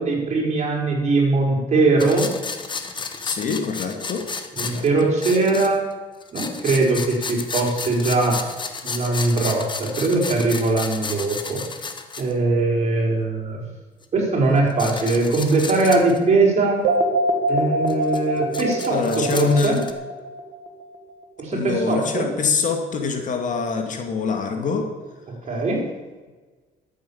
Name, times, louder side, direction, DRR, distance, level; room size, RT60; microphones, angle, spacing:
voice 1, 0.0-2.3 4.6-5.8 6.3-8.4 8.8-11.6 12.2-13.6 14.1-16.8 17.5-19.8 21.4-22.3 25.4-25.8, right 3 dB, 40° right, -1 dB, 5.0 m, -21 dB
sound 1, 2.0-5.9 6.2-12.3 14.0-14.1 14.6-16.2 17.9-19.9, left 4 dB, 30° left, 1.4 m, -32 dB
voice 2, 3.2-4.3 4.6-4.9 18.9-19.8 21.5-24.9, left 5 dB, 50° left, 4 dB, 2.2 m, -24 dB
sound 2, 16.8-20.8, right 1 dB, 75° right, 2.4 m, -24 dB
13.0 x 8.9 x 7.2 m, 1.3 s
cardioid pair, 110°, 17 cm